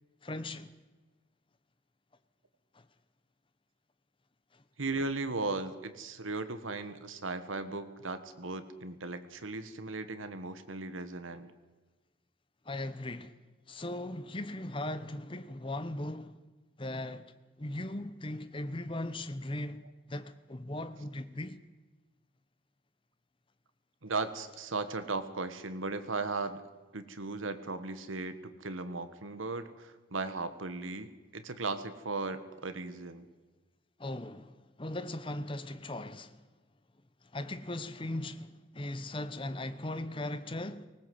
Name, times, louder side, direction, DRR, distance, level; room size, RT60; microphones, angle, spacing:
voice 1, 0.2-0.7 2.7-2.8 4.5-4.6 12.6-13.3 13.7-16.4 16.8-17.3 17.6-19.8 20.1-21.6 34.0-36.4 37.2-40.9, left 1 dB, 25° left, 0.8 m, -38 dB
voice 2, 4.8-11.5 24.0-26.6 26.9-33.2, right 3 dB, 90° right, 1.5 m, -37 dB
19.5 x 18.5 x 7.8 m
head